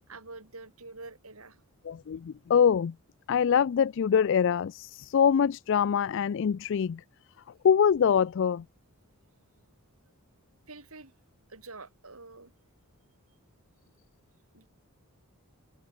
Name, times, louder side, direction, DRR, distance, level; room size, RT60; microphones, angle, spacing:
voice 1, 0.1-1.6 10.7-11.1 11.5-12.5 14.5-14.7, right 3 dB, 75° right, 5.0 m, -46 dB
voice 2, 1.9-2.9 3.3-7.0 7.6-8.6, left 7 dB, 55° left, 0.3 m, -24 dB
head